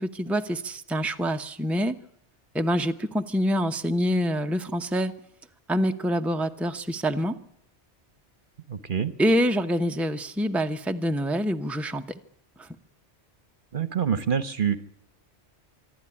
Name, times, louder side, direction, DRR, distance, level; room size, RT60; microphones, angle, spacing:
voice 1, 0.0-2.0 2.5-5.1 5.7-7.4 9.2-12.0 12.6-12.7, equal, ahead, 6 dB, 0.9 m, -26 dB
voice 2, 8.7-9.1 13.7-14.8, right 7 dB, 50° right, 14 dB, 1.1 m, -26 dB
25.5 x 12.5 x 9.9 m, 0.71 s
omnidirectional pair, 1.1 m